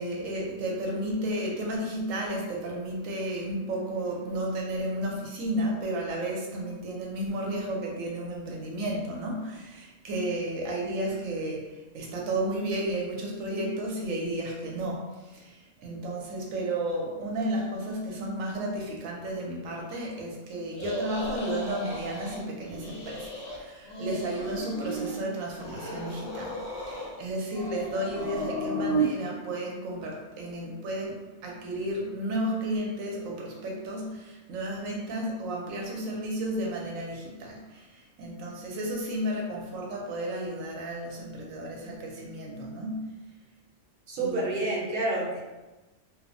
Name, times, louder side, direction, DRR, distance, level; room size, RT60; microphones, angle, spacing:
voice 1, 0.0-15.0 15.3-26.6 26.8-43.1 44.2-44.6, right 1 dB, 85° right, -1 dB, 1.0 m, -33 dB
sound 1, 20.7-22.4 22.7-23.6 23.8-25.2 25.6-27.2 27.5-29.1, right 2 dB, 55° left, 0.8 m, -34 dB
voice 2, 44.1-45.4, right 2 dB, 50° right, -5 dB, 0.8 m, -28 dB
2.8 x 2.0 x 2.6 m, 1.1 s
omnidirectional pair, 1.3 m